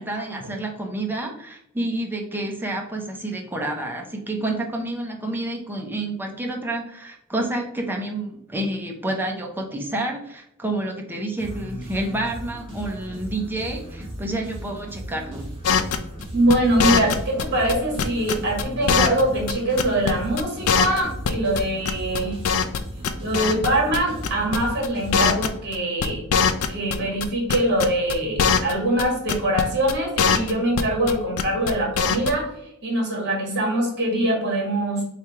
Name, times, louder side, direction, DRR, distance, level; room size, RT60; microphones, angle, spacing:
voice 1, 0.0-15.5, right 1 dB, 10° right, 1 dB, 0.6 m, -29 dB
sound 1, 11.4-26.0, equal, 25° right, 1.2 m, -37 dB
sound 2, 15.6-17.4 17.7-19.2 19.5-19.6 19.8-20.1 20.4-20.5 20.7-21.6 21.8-22.8 23.0-23.7 23.9-24.0 24.2-24.6 24.8-24.9 25.1-25.8 26.0-27.2 27.5-28.7 29.0-29.1 29.3-29.6 29.9-31.1 31.4-31.7 32.0-32.3, left 6 dB, 65° left, 0.4 m, -21 dB
voice 2, 16.3-22.4 23.2-26.2 26.7-32.5 32.8-35.0, right 1 dB, 50° right, -1 dB, 1.7 m, -23 dB
3.2 x 2.8 x 4.6 m, 0.77 s
head